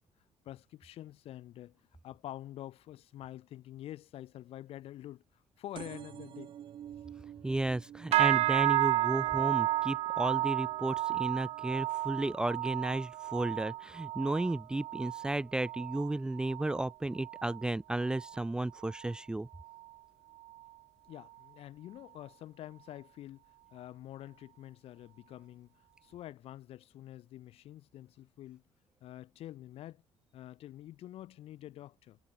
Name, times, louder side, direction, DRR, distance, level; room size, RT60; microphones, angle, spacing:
voice 1, 0.5-6.5 21.0-23.4 23.7-28.6 29.0-30.0 30.3-32.2, left 13 dB, 65° left, 5.4 m, -47 dB
sound 1, 5.7-13.0 13.5-13.9 14.8-14.9 15.1-15.2 15.4-15.5, right 10 dB, 50° right, 6.9 m, -51 dB
voice 2, 7.4-19.5, right 2 dB, 5° right, 0.4 m, -33 dB
sound 2, 8.1-17.7 18.0-18.4 18.8-19.1 19.7-19.8, right 15 dB, 75° right, 0.9 m, -32 dB
cardioid pair, 170°, 11 cm